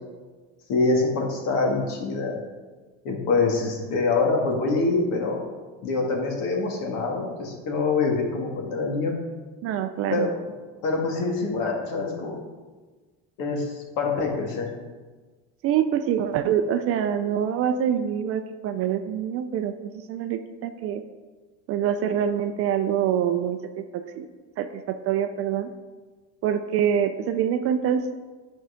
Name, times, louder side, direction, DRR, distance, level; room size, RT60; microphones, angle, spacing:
voice 1, 0.7-2.4 3.0-5.4 5.8-9.2 10.1-10.3 10.8-12.4 13.4-14.7, left 3 dB, 60° left, 1 dB, 2.0 m, -25 dB
voice 2, 9.6-10.3 15.6-21.0 21.7-24.3 24.6-25.7 26.4-28.1, right 9 dB, 40° right, 8 dB, 0.4 m, -25 dB
9.3 x 4.6 x 5.0 m, 1.4 s
cardioid pair, 140°, 37 cm